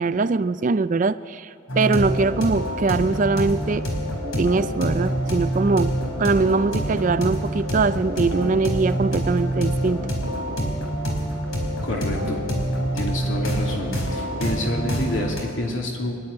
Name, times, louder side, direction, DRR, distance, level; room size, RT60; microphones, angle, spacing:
voice 1, 0.0-3.8 4.4-5.9 6.2-10.1, right 4 dB, 40° right, 14 dB, 0.4 m, -22 dB
sound 1, 1.7-15.4, equal, 85° left, 4.3 m, -26 dB
voice 2, 11.8-12.4 12.9-16.2, left 1 dB, 65° left, 0 dB, 3.0 m, -28 dB
25.0 x 11.0 x 9.7 m, 2.4 s
head